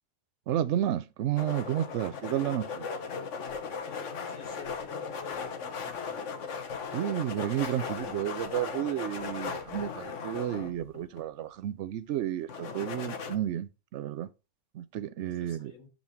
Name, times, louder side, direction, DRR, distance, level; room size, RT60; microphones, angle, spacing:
voice 1, 0.5-2.9 6.9-14.3 14.7-15.7, right 11 dB, 65° right, 0.8 m, -32 dB
sound 1, 1.4-11.2 12.5-13.3, left 5 dB, 60° left, 1.3 m, -37 dB
voice 2, 3.9-6.2 15.4-15.9, left 5 dB, 85° left, 2.0 m, -49 dB
6.4 x 5.5 x 4.3 m
omnidirectional pair, 1.4 m